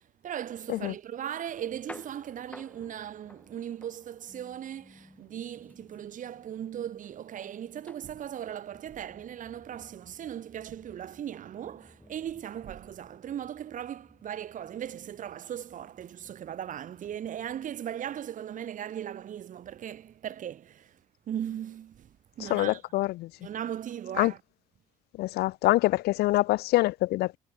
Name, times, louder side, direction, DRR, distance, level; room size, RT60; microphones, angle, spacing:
voice 1, 0.0-21.0 21.3-22.8 23.4-24.4, right 10 dB, 50° right, 1.3 m, -38 dB
sound 1, 1.5-17.6, left 1 dB, 10° left, 4.1 m, -56 dB
voice 2, 22.4-23.3 24.2-24.3 25.2-27.4, left 18 dB, 70° left, 0.4 m, -25 dB
cardioid pair, 110°, 17 cm